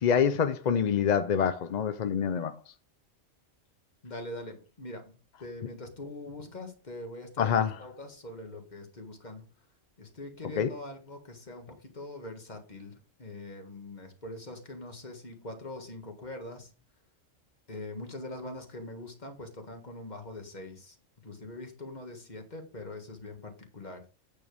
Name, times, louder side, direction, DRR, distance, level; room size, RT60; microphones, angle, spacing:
voice 1, 0.0-2.5 7.4-7.7 10.6-10.7, left 7 dB, 50° left, 0.5 m, -26 dB
voice 2, 4.0-9.5 10.0-16.7 17.7-21.0 21.2-24.0, left 2 dB, 35° left, 1.7 m, -43 dB
8.6 x 6.7 x 3.5 m
omnidirectional pair, 1.3 m